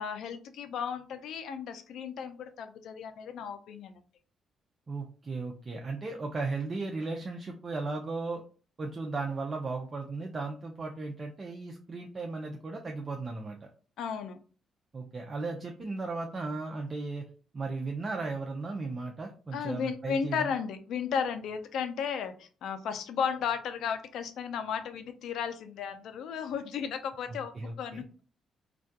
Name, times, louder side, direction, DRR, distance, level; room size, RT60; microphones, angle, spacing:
voice 1, 0.0-4.0 14.0-14.4 19.5-28.0, left 7 dB, 75° left, 9 dB, 0.3 m, -34 dB
voice 2, 4.9-8.4 8.8-13.7 14.9-17.3 17.5-20.5 27.3-28.0, right 3 dB, 35° right, 2 dB, 0.4 m, -36 dB
2.3 x 2.2 x 2.6 m, 0.39 s
cardioid pair, 90°, 0 cm